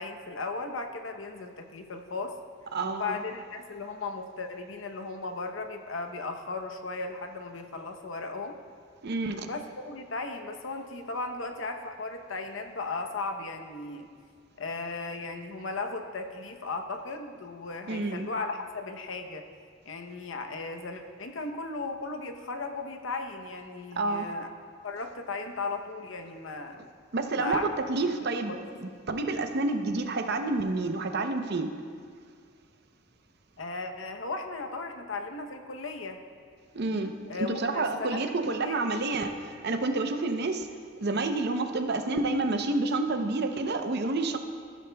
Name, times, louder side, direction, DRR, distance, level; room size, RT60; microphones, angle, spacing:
voice 1, 0.0-2.3 2.9-8.6 9.4-14.1 14.6-19.4 19.8-24.5 24.8-26.8 27.4-27.7 28.5-28.6 33.6-36.2 37.3-38.9, left 3 dB, 75° left, 5 dB, 0.8 m, -36 dB
voice 2, 2.7-3.2 9.0-9.5 17.9-18.3 24.0-24.3 27.1-31.7 36.7-40.7 41.0-44.4, right 3 dB, 55° right, 6 dB, 0.7 m, -29 dB
14.5 x 12.0 x 2.3 m, 2.1 s
head